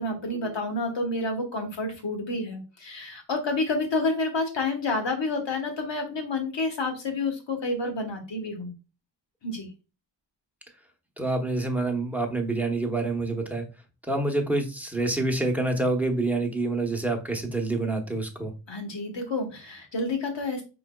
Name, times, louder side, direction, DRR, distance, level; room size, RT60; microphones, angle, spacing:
voice 1, 0.0-8.7 9.4-9.7 18.7-20.6, left 2 dB, 70° left, 4 dB, 1.3 m, -29 dB
voice 2, 11.2-13.6 14.1-18.5, right 2 dB, 5° right, 2 dB, 0.8 m, -27 dB
4.7 x 3.8 x 2.2 m, 0.31 s
wide cardioid pair, 90°, 45 cm